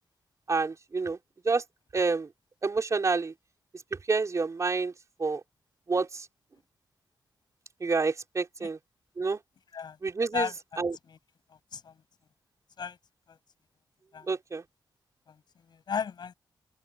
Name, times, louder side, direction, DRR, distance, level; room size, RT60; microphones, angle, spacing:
voice 1, 0.5-1.2 1.4-1.6 1.9-2.3 2.6-3.3 3.9-4.9 5.2-5.4 5.9-6.3 7.8-8.8 9.2-9.4 10.0-10.5 10.8-11.0 14.3-14.6, right 4 dB, 40° right, 4.7 m, -28 dB
voice 2, 10.3-10.8 11.1-11.2 11.7-12.0 12.8-13.0 13.3-13.4 14.1-14.3 15.3-15.4 15.7-16.3, left 6 dB, 70° left, 6.4 m, -35 dB
wide cardioid pair, 95°, 8 cm